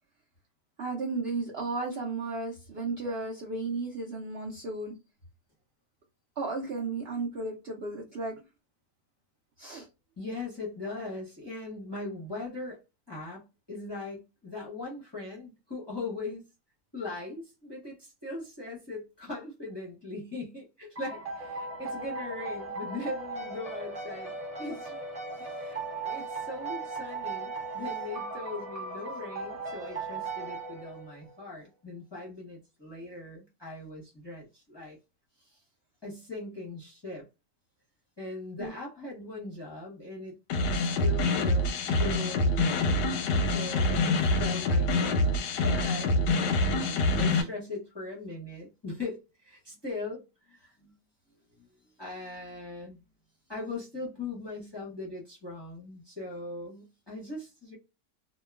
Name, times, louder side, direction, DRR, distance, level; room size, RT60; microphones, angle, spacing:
voice 1, 0.8-5.0 6.4-8.4 9.6-9.9 38.6-38.7, right 3 dB, 85° right, 0.5 m, -34 dB
voice 2, 10.2-12.8 13.1-16.4 16.9-25.0 25.4-25.8 26.0-35.0 35.4-35.6 36.0-37.3 38.2-40.4 40.8-50.9 51.6-51.7 52.0-53.0 53.5-57.8, left 2 dB, 25° left, 0.6 m, -40 dB
sound 1, 21.0-31.3, right 3 dB, 35° right, 0.5 m, -37 dB
sound 2, 40.5-47.4, left 2 dB, 90° left, 1.2 m, -26 dB
2.8 x 2.3 x 2.2 m
omnidirectional pair, 1.8 m